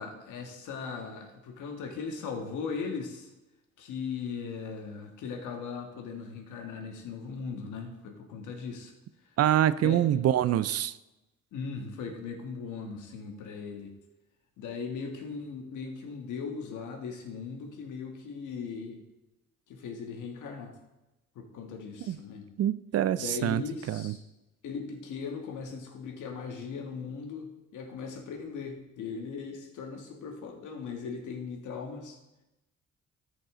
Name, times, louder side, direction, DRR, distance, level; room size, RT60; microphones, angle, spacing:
voice 1, 0.0-3.3 3.8-8.9 9.2-9.3 9.8-10.1 11.5-13.9 14.6-19.0 19.7-20.7 21.3-22.5 23.1-24.2 24.6-32.2, left 5 dB, 80° left, 3 dB, 1.6 m, -38 dB
voice 2, 9.4-11.0 22.1-22.2 22.6-23.6 23.9-24.1, right 11 dB, 55° right, 16 dB, 0.5 m, -25 dB
13.0 x 5.4 x 3.8 m, 0.99 s
cardioid pair, 90°, 30 cm